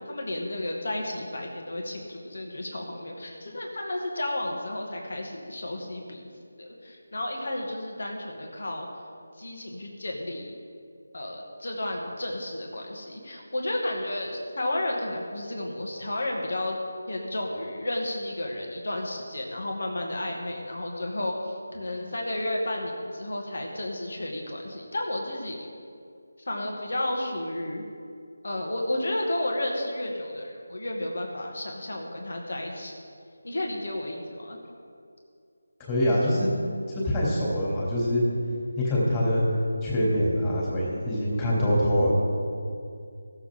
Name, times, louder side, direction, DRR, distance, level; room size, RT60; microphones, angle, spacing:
voice 1, 0.0-6.3 6.6-8.9 9.4-10.5 11.1-16.8 17.1-25.7 26.5-27.8 28.4-32.9 33.4-34.6, left 1 dB, 65° left, 0 dB, 2.1 m, -32 dB
voice 2, 35.8-36.5 36.9-38.2 38.8-39.4 39.8-42.1, equal, 15° left, -6 dB, 2.9 m, -24 dB
17.5 x 7.3 x 3.8 m, 2.4 s
figure-of-eight pair, 165°, 0 cm